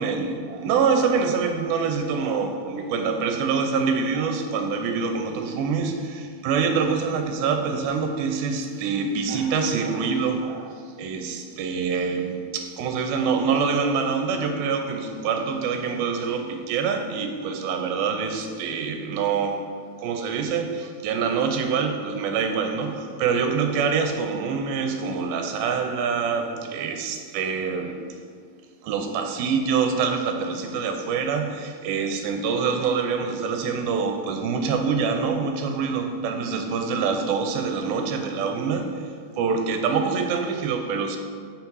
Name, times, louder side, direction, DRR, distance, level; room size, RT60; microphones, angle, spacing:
voice 1, 0.0-19.7 20.0-28.0 28.8-41.2, right 5 dB, 90° right, 5 dB, 2.4 m, -25 dB
5.7 x 4.5 x 5.4 m, 2.1 s
omnidirectional pair, 4.2 m